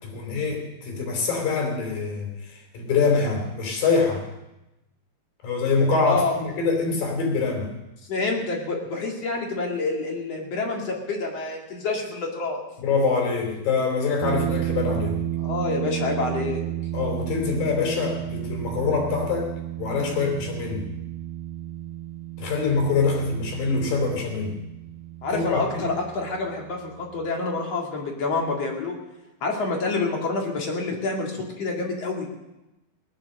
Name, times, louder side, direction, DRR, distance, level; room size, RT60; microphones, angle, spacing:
voice 1, 0.0-4.2 5.4-7.7 12.8-15.2 16.9-19.5 19.8-20.9 22.4-24.6 25.3-25.9, left 4 dB, 75° left, 1 dB, 5.1 m, -24 dB
voice 2, 6.1-6.4 8.1-12.6 15.4-16.6 25.2-29.0 29.4-32.4, left 3 dB, 50° left, 0 dB, 3.2 m, -27 dB
sound 1, 14.2-27.3, right 15 dB, 80° right, 2.4 m, -32 dB
18.0 x 11.0 x 6.6 m, 0.97 s
omnidirectional pair, 4.1 m